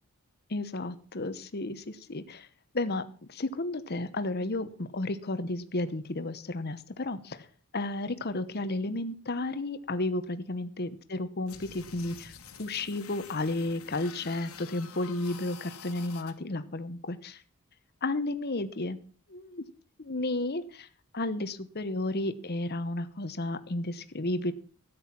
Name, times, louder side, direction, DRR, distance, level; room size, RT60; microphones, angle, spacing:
voice 1, 0.5-2.5 2.7-3.0 3.3-7.5 7.7-12.3 12.6-17.4 18.0-19.0 19.3-19.6 20.0-20.9 21.1-24.5, left 2 dB, 45° left, 11 dB, 1.0 m, -32 dB
sound 1, 11.5-16.3, left 6 dB, 70° left, 1.7 m, -48 dB
13.5 x 9.5 x 5.9 m, 0.43 s
head